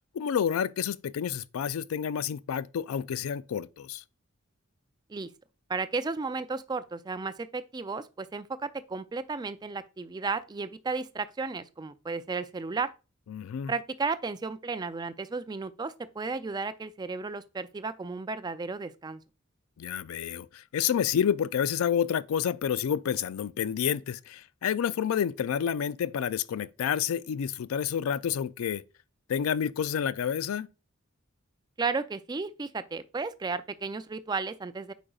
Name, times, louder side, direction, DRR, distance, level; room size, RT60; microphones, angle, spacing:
voice 1, 0.1-4.0 13.3-13.7 19.8-28.8 29.3-30.7, left 8 dB, 85° left, 0.3 m, -29 dB
voice 2, 5.7-12.9 13.7-19.2 31.8-34.9, right 4 dB, 20° right, 0.3 m, -34 dB
8.6 x 5.1 x 2.4 m
head